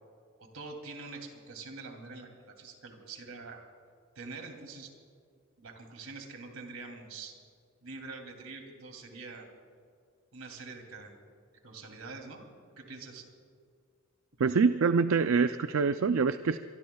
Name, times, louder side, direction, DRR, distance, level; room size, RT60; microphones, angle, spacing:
voice 1, 0.4-3.6 4.1-4.9 5.6-7.3 7.8-9.5 10.3-11.1 11.6-12.4 12.8-13.2, right 3 dB, 85° right, 2 dB, 2.8 m, -45 dB
voice 2, 14.4-16.6, right 5 dB, 70° right, 10 dB, 0.4 m, -25 dB
24.5 x 23.5 x 2.3 m, 2.1 s
head